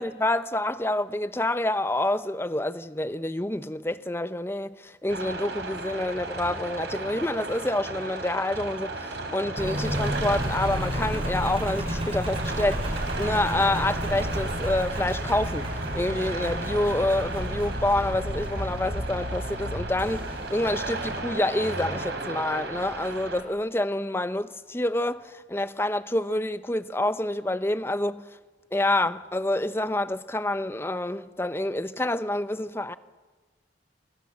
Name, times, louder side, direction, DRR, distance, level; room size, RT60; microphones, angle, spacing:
voice 1, 0.0-28.2 28.7-33.0, left 1 dB, 15° left, 0.8 m, -27 dB
sound 1, 5.1-23.4, right 2 dB, 80° right, 3.7 m, -35 dB
Engine, 9.6-21.2, equal, 30° right, 5.2 m, -32 dB
25.5 x 24.0 x 7.4 m
head